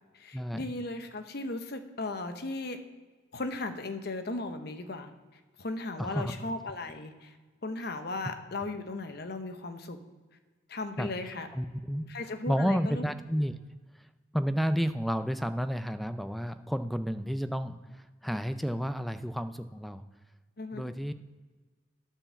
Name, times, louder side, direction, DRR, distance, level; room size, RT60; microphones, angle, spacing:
voice 1, 0.1-2.8 3.3-5.1 5.6-7.3 7.6-10.0 10.7-11.5 12.1-13.0 20.6-20.9, left 2 dB, 55° left, 8 dB, 0.8 m, -36 dB
voice 2, 6.0-6.3 11.0-11.1 11.5-12.1 12.5-13.5 14.0-14.1 14.3-20.0 20.7-21.1, equal, ahead, 11 dB, 0.3 m, -31 dB
8.9 x 4.6 x 7.0 m, 1.4 s
head